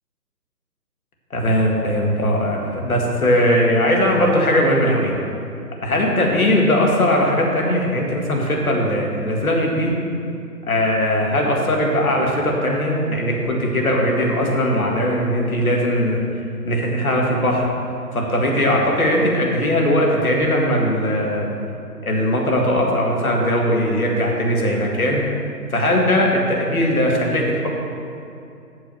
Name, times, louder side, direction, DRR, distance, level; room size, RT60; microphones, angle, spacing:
voice 1, 1.3-5.1 5.8-9.9 10.7-16.2 16.7-17.7 18.1-21.5 22.0-25.2 25.7-27.7, equal, 60° left, -1 dB, 1.8 m, -19 dB
8.0 x 6.6 x 5.7 m, 2.6 s
figure-of-eight pair, 150°, 49 cm